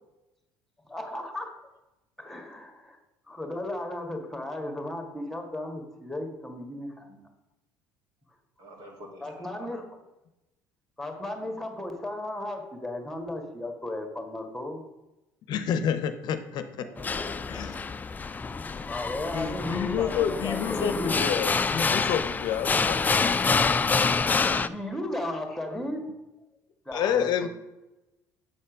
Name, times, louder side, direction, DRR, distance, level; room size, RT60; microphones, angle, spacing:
voice 1, 0.9-1.6 2.2-3.0 3.3-7.3 9.2-9.8 11.0-14.8 18.9-21.2 24.7-26.2 26.8-27.5, left 1 dB, 5° left, 4 dB, 1.6 m, -35 dB
voice 2, 8.6-9.5 16.8-17.3 24.2-24.7, right 1 dB, 60° right, 1 dB, 2.1 m, -44 dB
voice 3, 15.5-16.9 17.5-17.9 19.3-23.1 26.9-27.5, left 8 dB, 60° left, 10 dB, 0.6 m, -29 dB
sound 1, 17.0-24.7, left 4 dB, 20° left, 0.3 m, -27 dB
7.5 x 4.2 x 5.2 m, 0.98 s
supercardioid pair, 75°, 8 cm